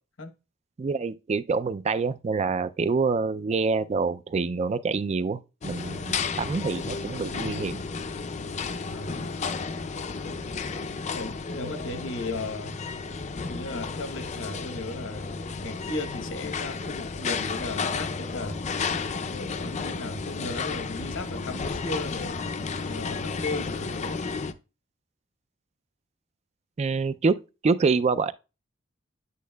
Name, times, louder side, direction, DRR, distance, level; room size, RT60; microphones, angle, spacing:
voice 1, 0.8-7.8 26.8-28.3, right 4 dB, 35° right, 0.3 m, -26 dB
sound 1, 5.6-24.5, left 4 dB, 40° left, 0.5 m, -32 dB
voice 2, 8.9-9.3 10.4-10.6 11.1-12.8 13.5-15.3 15.6-18.6 19.6-24.2, left 2 dB, 85° left, 1.0 m, -36 dB
9.3 x 8.3 x 2.3 m
head